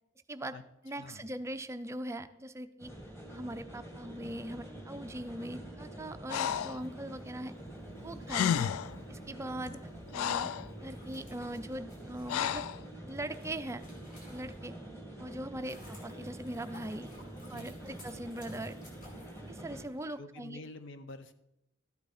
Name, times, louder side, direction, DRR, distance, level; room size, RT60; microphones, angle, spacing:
voice 1, 0.8-2.9 3.3-7.5 8.0-8.7 9.1-9.8 10.1-10.5 10.8-12.7 13.1-13.8 14.3-14.8 15.2-17.1 17.5-18.8 19.5-20.6, right 1 dB, 15° right, 9 dB, 0.4 m, -40 dB
sound 1, 2.8-19.8, right 1 dB, 15° left, 2.1 m, -46 dB
Breathing, 6.3-6.8 8.0-8.1 8.3-9.0 9.7-10.7 12.3-12.8, left 9 dB, 90° left, 0.3 m, -32 dB
sound 2, 10.8-14.8 15.3-20.0, left 1 dB, 40° left, 3.5 m, -56 dB
voice 2, 17.4-17.9 18.5-18.7 20.2-21.3, left 2 dB, 60° left, 11 dB, 0.8 m, -48 dB
13.0 x 8.2 x 4.2 m, 0.85 s
head